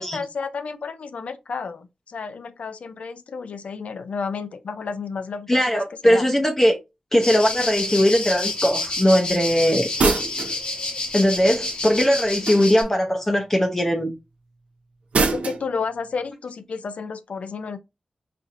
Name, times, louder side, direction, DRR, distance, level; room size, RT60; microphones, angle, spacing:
voice 1, 0.0-6.2 15.3-17.8, left 5 dB, 85° left, 0.5 m, -31 dB
voice 2, 5.5-6.8 7.1-9.9 11.1-14.1, equal, 20° left, 0.7 m, -19 dB
sound 1, 7.2-12.8, left 2 dB, 50° left, 1.1 m, -29 dB
sound 2, 10.0-10.6 12.4-12.9 15.1-15.6, right 3 dB, 85° right, 0.6 m, -22 dB
4.3 x 2.6 x 2.5 m
wide cardioid pair, 100°, 2 cm